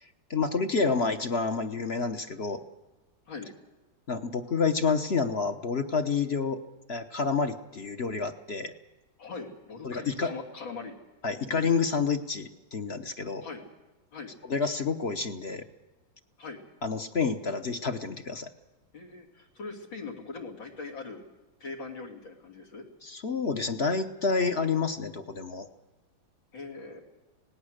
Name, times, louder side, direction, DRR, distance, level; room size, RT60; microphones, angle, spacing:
voice 1, 0.3-2.6 4.1-6.6 6.9-8.7 9.8-10.3 11.2-13.5 14.5-15.6 16.8-18.5 23.0-25.7, left 4 dB, 40° left, 7 dB, 1.0 m, -29 dB
voice 2, 9.2-10.9 11.4-11.5 13.4-13.6 14.1-14.3 16.4-16.6 18.9-21.2 21.6-22.9 26.5-27.0, left 4 dB, 90° left, -1 dB, 3.7 m, -41 dB
26.0 x 18.5 x 6.6 m, 1.1 s
omnidirectional pair, 2.0 m